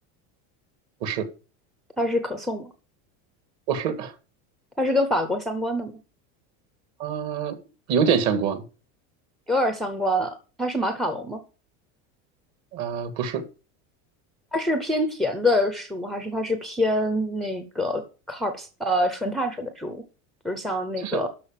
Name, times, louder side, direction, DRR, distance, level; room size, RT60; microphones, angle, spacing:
voice 1, 2.0-2.7 4.8-6.0 9.5-11.4 14.5-20.0 20.4-21.3, left 1 dB, ahead, 0.5 m, -26 dB
voice 2, 3.7-4.1 7.0-7.6 7.9-8.6 12.7-13.4 21.0-21.3, right 7 dB, 45° right, 1.9 m, -25 dB
12.5 x 4.7 x 7.3 m
cardioid pair, 175°, 39 cm